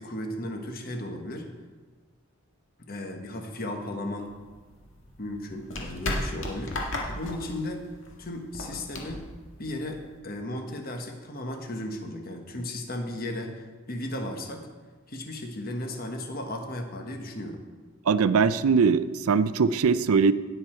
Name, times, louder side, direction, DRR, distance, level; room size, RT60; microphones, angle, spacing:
voice 1, 0.0-1.5 2.8-4.3 5.2-7.9 8.2-9.3 9.6-14.7 15.1-17.6, left 1 dB, 45° left, 4 dB, 1.3 m, -35 dB
sound 1, 4.2-10.2, left 1 dB, 60° left, 2.0 m, -35 dB
voice 2, 18.1-20.3, right 5 dB, 85° right, 14 dB, 0.5 m, -21 dB
17.5 x 6.9 x 4.5 m, 1.4 s
head